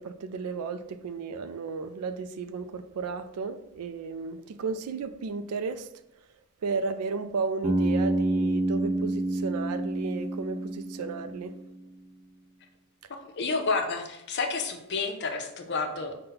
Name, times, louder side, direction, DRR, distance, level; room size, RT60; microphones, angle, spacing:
voice 1, 0.0-5.9 6.6-11.6, right 4 dB, 90° right, 0.4 m, -34 dB
Bass guitar, 7.6-11.7, right 1 dB, 25° right, 0.6 m, -28 dB
voice 2, 13.4-16.1, left 4 dB, 50° left, 0.6 m, -30 dB
5.3 x 2.2 x 3.9 m
head